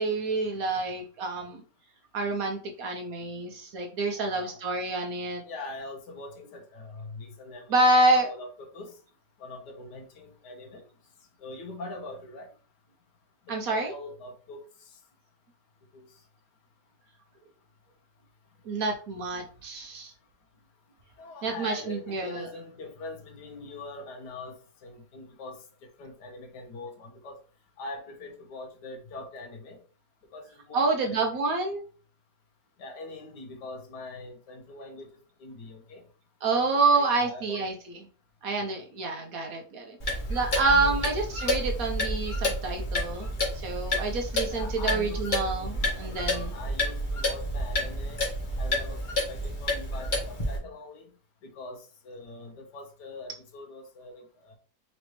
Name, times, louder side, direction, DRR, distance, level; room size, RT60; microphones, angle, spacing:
voice 1, 0.0-1.6 2.1-5.4 7.7-8.3 13.5-13.9 18.7-20.1 21.4-22.5 30.7-31.8 36.4-38.0 38.4-43.3 43.6-46.5, right 3 dB, 65° right, 3 dB, 1.0 m, -27 dB
voice 2, 4.1-4.6 5.4-7.8 8.1-9.0 9.4-10.8 11.4-12.5 13.5-15.0 15.9-16.1 21.2-25.6 26.0-27.4 27.8-29.8 30.3-31.5 32.8-35.1 35.4-36.0 36.7-37.7 38.6-38.8 40.5-41.0 44.5-48.2 48.6-49.0 49.3-51.1 51.4-54.5, left 2 dB, 70° left, 4 dB, 1.4 m, -43 dB
Clock, 40.0-50.6, left 1 dB, 35° left, 0.9 m, -30 dB
4.1 x 3.1 x 3.1 m, 0.39 s
omnidirectional pair, 1.9 m